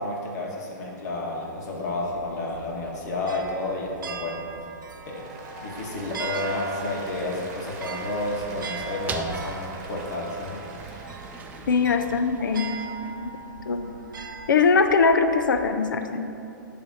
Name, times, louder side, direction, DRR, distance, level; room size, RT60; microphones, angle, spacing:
voice 1, 0.0-4.4 5.1-5.3 5.6-10.6, left 2 dB, 55° left, -2 dB, 1.8 m, -31 dB
sound 1, 1.7-15.7, right 5 dB, 80° right, 0.6 m, -40 dB
Applause, 4.9-12.0, right 2 dB, 35° right, 1.5 m, -42 dB
sound 2, 7.6-13.4, right 4 dB, 15° right, 0.4 m, -41 dB
voice 2, 11.7-12.8 13.1-13.3 13.7-13.9 14.5-16.3, left 5 dB, 80° left, 8 dB, 0.6 m, -21 dB
9.2 x 3.4 x 6.3 m, 2.7 s
hypercardioid pair, 130°, 11 cm